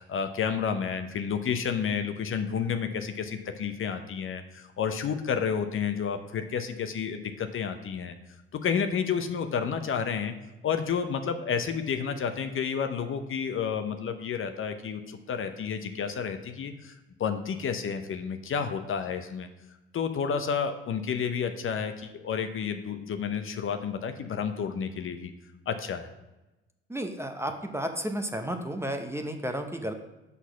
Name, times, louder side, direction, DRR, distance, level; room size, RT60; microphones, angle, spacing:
voice 1, 0.0-8.1 8.5-10.3 10.6-16.9 17.2-19.5 19.9-25.3 25.7-26.1, left 7 dB, 40° left, 8 dB, 0.7 m, -30 dB
voice 2, 26.9-29.9, right 1 dB, 10° right, 5 dB, 0.8 m, -32 dB
6.1 x 4.1 x 5.7 m, 1.0 s
hypercardioid pair, 50°, 32 cm